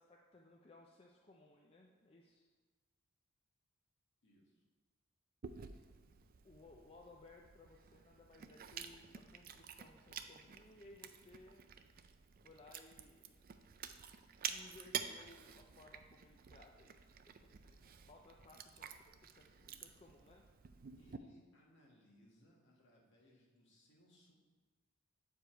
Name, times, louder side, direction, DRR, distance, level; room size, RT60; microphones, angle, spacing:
voice 1, 0.0-2.5 6.4-11.6 12.4-13.4 14.5-20.5, left 2 dB, 25° left, -1 dB, 0.5 m, -61 dB
voice 2, 4.2-4.6 21.0-24.4, equal, 55° left, -3 dB, 1.8 m, -67 dB
Chewing mastication, 5.4-21.2, right 8 dB, 40° right, 0.4 m, -50 dB
8.3 x 4.9 x 4.5 m, 1.4 s
head